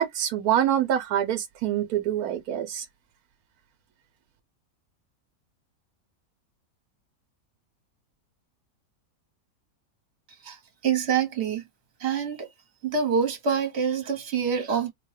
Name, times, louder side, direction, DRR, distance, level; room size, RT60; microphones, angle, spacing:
voice 1, 0.0-2.9, right 10 dB, 85° right, 1.1 m, -25 dB
voice 2, 10.8-11.6 12.0-12.5 12.8-14.9, right 6 dB, 50° right, 1.3 m, -26 dB
4.2 x 2.2 x 3.2 m
omnidirectional pair, 1.6 m